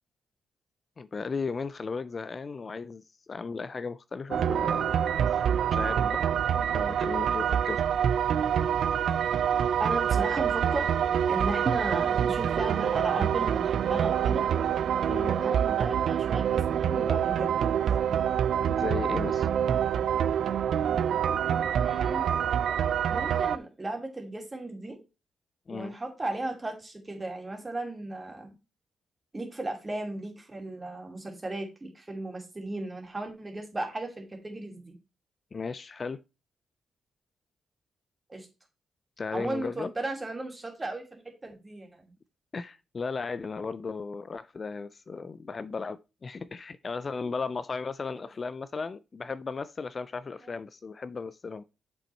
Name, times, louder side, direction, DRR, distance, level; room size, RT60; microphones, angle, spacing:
voice 1, 1.0-5.1 5.7-6.2 6.6-7.8 15.1-15.4 18.7-19.5 25.7-25.9 35.5-36.2 39.2-39.9 42.5-51.6, left 4 dB, 35° left, 0.3 m, -36 dB
sound 1, 4.3-23.6, right 9 dB, 70° right, 0.4 m, -26 dB
sound 2, 9.3-14.9, equal, ahead, 1.4 m, -52 dB
voice 2, 9.8-10.9 11.3-14.4 15.2-17.7 21.8-22.3 23.1-25.0 25.7-28.5 29.3-34.9 38.3-38.5 39.3-42.1 50.4-50.5, right 2 dB, 20° right, 2.4 m, -35 dB
7.3 x 5.4 x 4.3 m
cardioid pair, 100°, 0 cm